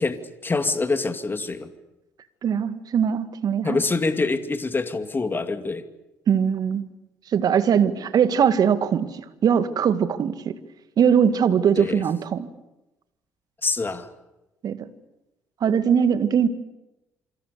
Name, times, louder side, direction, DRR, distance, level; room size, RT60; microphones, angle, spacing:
voice 1, 0.0-1.7 3.6-5.9 11.8-12.0 13.6-14.1, left 3 dB, 25° left, 9 dB, 2.5 m, -25 dB
voice 2, 2.4-3.8 6.3-6.8 7.3-10.6 11.0-12.5 14.6-14.9 15.6-16.5, right 7 dB, 50° right, 11 dB, 2.1 m, -21 dB
28.0 x 25.5 x 6.9 m, 0.95 s
hypercardioid pair, 50°, 8 cm